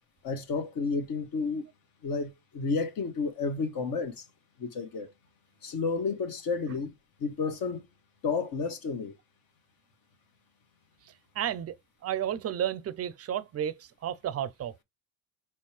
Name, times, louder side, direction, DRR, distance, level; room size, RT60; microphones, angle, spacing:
voice 1, 0.2-1.7 2.0-4.2 4.6-5.1 5.6-6.9 7.2-7.8 8.2-9.1, left 4 dB, 50° left, 1.2 m, -31 dB
voice 2, 11.3-11.8 12.0-14.8, right 10 dB, 35° right, 0.5 m, -32 dB
4.4 x 3.3 x 3.2 m
supercardioid pair, 95°, 44 cm